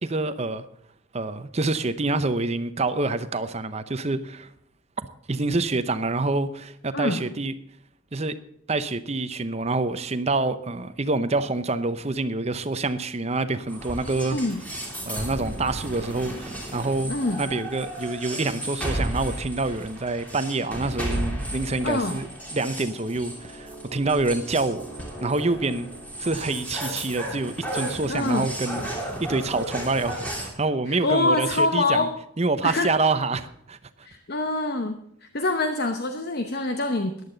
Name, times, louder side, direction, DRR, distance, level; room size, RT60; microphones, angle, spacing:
voice 1, 0.0-0.6 1.1-4.5 5.3-7.5 8.1-8.3 8.7-14.4 15.0-17.1 17.4-24.9 25.2-25.9 26.2-32.1 32.4-34.1, right 3 dB, 30° right, 0.7 m, -27 dB
sound 1, 13.7-30.5, right 1 dB, 10° left, 3.4 m, -34 dB
voice 2, 14.3-14.6 17.1-17.4 21.8-22.2 28.1-28.5 30.9-32.2 32.6-32.9 34.0-37.2, left 2 dB, 50° left, 1.0 m, -25 dB
14.5 x 11.0 x 4.0 m
head